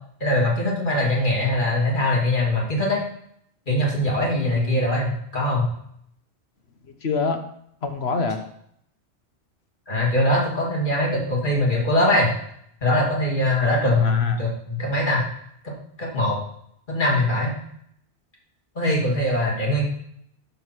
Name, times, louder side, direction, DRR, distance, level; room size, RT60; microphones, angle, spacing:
voice 1, 0.2-3.0 3.7-5.7 9.9-12.3 12.8-15.2 15.6-15.7 16.0-16.4 16.9-17.5 18.7-19.8, left 1 dB, 45° left, -3 dB, 3.0 m, -22 dB
voice 2, 4.3-4.8 7.0-7.4 7.8-8.4 13.8-14.4, left 4 dB, 65° left, 6 dB, 1.4 m, -26 dB
10.5 x 6.6 x 4.6 m, 0.70 s
omnidirectional pair, 1.2 m